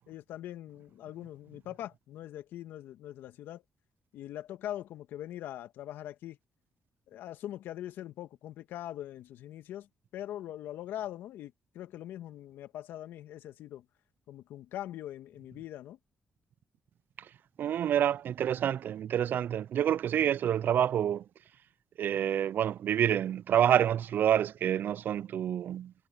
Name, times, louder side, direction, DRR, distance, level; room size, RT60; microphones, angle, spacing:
voice 1, 0.0-3.6 4.1-6.4 7.1-9.9 10.1-13.8 14.3-16.0, left 12 dB, 80° left, 1.9 m, -42 dB
voice 2, 17.6-21.2 22.0-25.9, right 10 dB, 65° right, 0.4 m, -28 dB
supercardioid pair, 50°, 4 cm